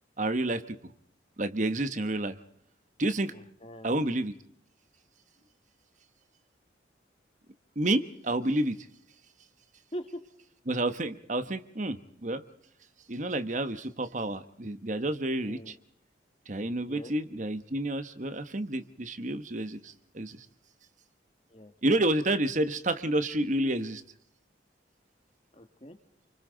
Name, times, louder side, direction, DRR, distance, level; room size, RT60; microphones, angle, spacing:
voice 1, 0.2-0.8 1.4-2.4 3.0-3.3 3.8-4.4 7.8-8.9 10.7-12.4 13.1-15.7 16.5-20.5 21.8-24.0, right 1 dB, 40° right, 10 dB, 1.1 m, -29 dB
voice 2, 3.3-4.0 9.9-10.2 15.4-15.7 16.8-17.1 21.5-21.7 25.5-26.0, equal, 35° left, 7 dB, 1.9 m, -42 dB
29.0 x 25.0 x 3.9 m, 0.67 s
head